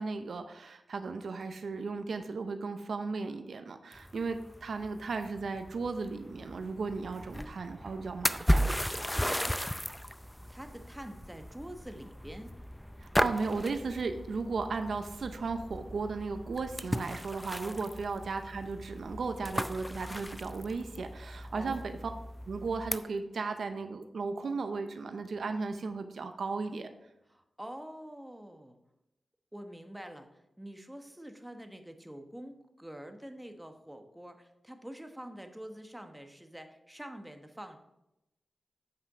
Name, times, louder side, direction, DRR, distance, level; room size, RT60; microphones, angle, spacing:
voice 1, 0.0-8.7 13.0-22.0 22.5-26.9, right 4 dB, 75° right, 8 dB, 0.6 m, -35 dB
sound 1, 3.9-23.0, equal, 5° left, 0.5 m, -36 dB
voice 2, 10.5-12.5 17.6-17.8 21.5-21.9 27.3-28.8 29.5-37.8, equal, 10° right, 6 dB, 1.1 m, -46 dB
8.0 x 5.8 x 4.9 m, 0.89 s
cardioid pair, 50°, 0 cm